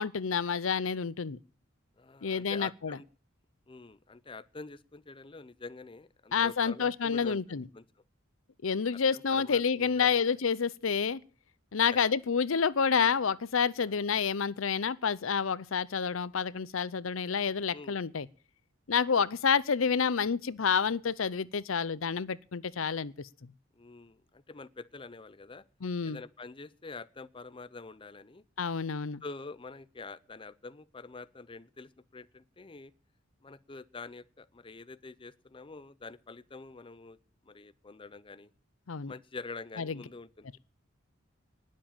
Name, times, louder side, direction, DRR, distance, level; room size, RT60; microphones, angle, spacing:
voice 1, 0.0-1.4 2.2-3.0 6.3-7.6 8.6-11.2 11.7-18.3 18.9-23.3 25.8-26.2 28.6-29.2 38.9-39.1 39.8-40.0, left 6 dB, 80° left, 0.6 m, -29 dB
voice 2, 2.0-3.0 3.7-7.8 8.9-10.3 13.8-14.0 17.7-18.0 23.7-25.6 26.0-28.4 29.2-32.9 33.4-37.2 37.4-38.5 39.1-40.5, left 3 dB, 25° left, 0.6 m, -46 dB
19.5 x 7.6 x 7.2 m
head